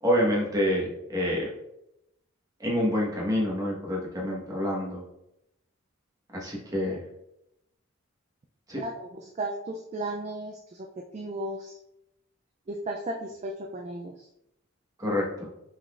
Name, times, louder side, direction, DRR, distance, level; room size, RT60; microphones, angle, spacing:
voice 1, 0.0-1.5 2.6-5.0 6.3-7.0 8.7-8.8 15.0-15.5, equal, 15° right, -3 dB, 1.1 m, -27 dB
voice 2, 8.7-11.8 12.7-14.3, right 1 dB, 30° right, 1 dB, 0.3 m, -35 dB
5.4 x 3.8 x 2.4 m, 0.82 s
head